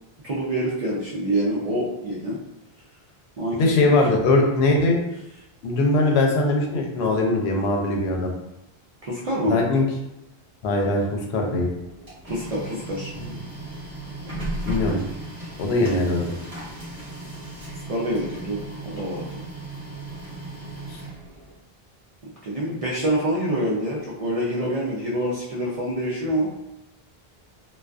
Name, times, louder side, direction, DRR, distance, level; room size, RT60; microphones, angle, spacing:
voice 1, 0.2-2.4 3.4-4.0 9.0-9.6 12.2-13.1 17.7-19.4 22.4-26.5, right 1 dB, 50° right, -6 dB, 0.4 m, -26 dB
voice 2, 3.6-5.0 5.6-8.3 9.4-9.8 10.6-11.7 14.6-15.0 15.6-16.3 20.9-21.0, left 2 dB, 85° left, 0 dB, 0.8 m, -21 dB
Printer, 11.8-21.6, right 1 dB, 35° right, 0.9 m, -35 dB
2.4 x 2.3 x 2.2 m, 0.90 s
omnidirectional pair, 1.0 m